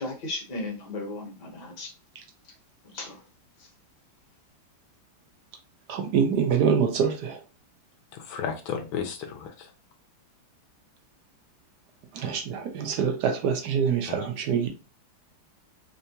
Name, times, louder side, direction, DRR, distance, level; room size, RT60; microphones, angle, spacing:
voice 1, 0.0-1.9 2.4-2.5 2.8-3.2 3.6-3.7, left 2 dB, 55° left, 1.6 m, -36 dB
voice 2, 5.9-7.4 12.1-14.7, right 7 dB, 65° right, 1.0 m, -25 dB
voice 3, 8.1-9.7 14.1-14.2, left 7 dB, 75° left, 1.4 m, -33 dB
3.7 x 3.3 x 2.7 m
omnidirectional pair, 2.3 m